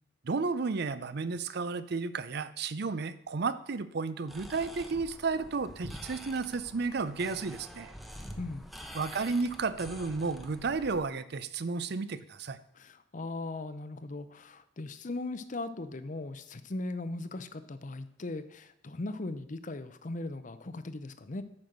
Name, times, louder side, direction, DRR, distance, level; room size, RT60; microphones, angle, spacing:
voice 1, 0.2-7.9 8.9-12.6, right 4 dB, 55° right, 14 dB, 0.6 m, -32 dB
sound 1, 4.3-11.1, equal, ahead, 0.8 m, -46 dB
voice 2, 12.7-21.4, left 2 dB, 40° left, 12 dB, 0.6 m, -38 dB
8.6 x 6.2 x 6.5 m, 0.80 s
head